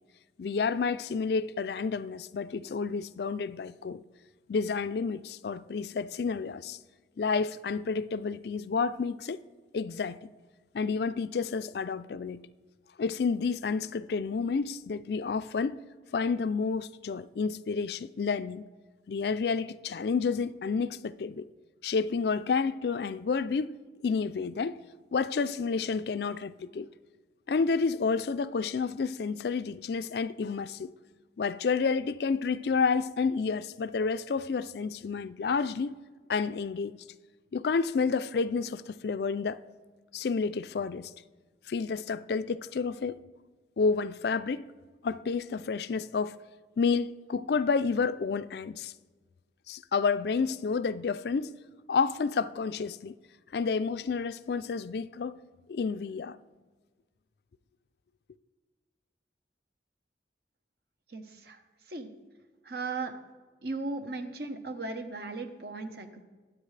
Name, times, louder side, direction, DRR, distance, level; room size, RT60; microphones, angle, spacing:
voice 1, 0.4-4.0 4.5-6.8 7.2-9.4 9.7-10.3 10.7-12.4 13.0-15.8 16.1-18.7 19.1-21.5 21.8-23.8 24.0-24.8 25.1-26.9 27.5-30.9 31.4-36.0 36.3-37.0 37.5-39.6 40.1-41.1 41.7-43.2 43.8-44.7 45.0-46.4 46.8-48.9 49.7-51.5 51.9-53.1 53.5-55.4 55.7-56.4, left 5 dB, 65° left, 0.4 m, -30 dB
voice 2, 61.1-61.6 61.9-62.1 62.6-63.1 63.6-66.2, right 3 dB, 60° right, 1.0 m, -37 dB
22.5 x 8.2 x 3.3 m
head